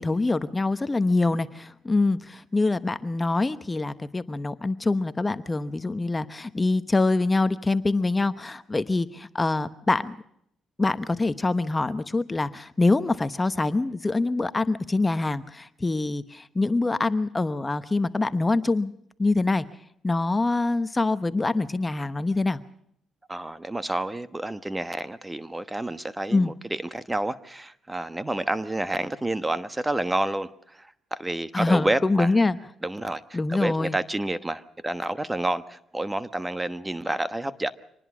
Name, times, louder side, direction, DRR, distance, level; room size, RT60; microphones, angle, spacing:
voice 1, 0.0-10.2 10.8-18.9 19.2-19.6 20.0-22.6 26.3-26.5 31.5-32.6 33.3-34.0, left 3 dB, 20° left, 12 dB, 1.0 m, -25 dB
voice 2, 23.3-32.3 32.8-37.7, right 1 dB, 15° right, 13 dB, 1.2 m, -29 dB
25.5 x 20.0 x 6.2 m, 0.72 s
cardioid pair, 90°, 0 cm